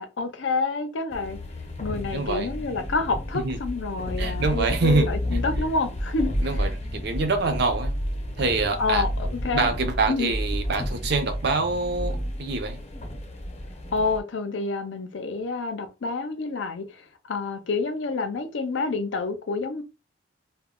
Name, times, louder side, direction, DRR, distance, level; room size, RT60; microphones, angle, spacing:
voice 1, 0.0-1.4 1.8-6.5 8.8-9.7 10.1-10.3 13.9-19.8, left 3 dB, 80° left, 0.5 m, -28 dB
sound 1, 1.1-14.2, equal, 35° left, 0.6 m, -31 dB
voice 2, 2.1-2.5 3.3-3.6 4.2-5.4 6.4-8.0 8.4-9.0 9.5-12.8, right 3 dB, 60° right, 0.5 m, -25 dB
2.1 x 2.1 x 3.6 m
head